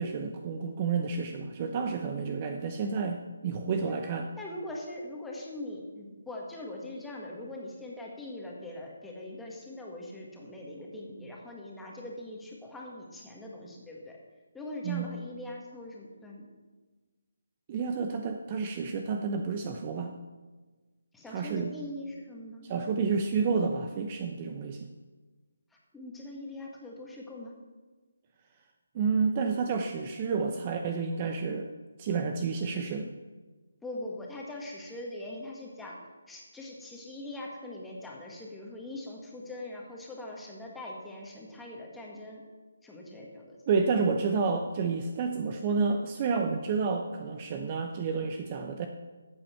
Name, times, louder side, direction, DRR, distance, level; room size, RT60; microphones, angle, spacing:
voice 1, 0.0-4.3 14.8-15.1 17.7-20.1 21.3-21.7 22.6-24.9 28.9-31.7 32.0-33.1 43.7-48.9, right 5 dB, 30° right, 5 dB, 0.7 m, -30 dB
voice 2, 4.0-14.2 14.5-16.5 21.1-22.7 25.9-27.5 33.8-36.0 36.3-42.4 42.8-43.6, left 1 dB, 5° left, -3 dB, 1.8 m, -42 dB
14.0 x 7.7 x 4.5 m, 1.3 s
figure-of-eight pair, 155°, 0 cm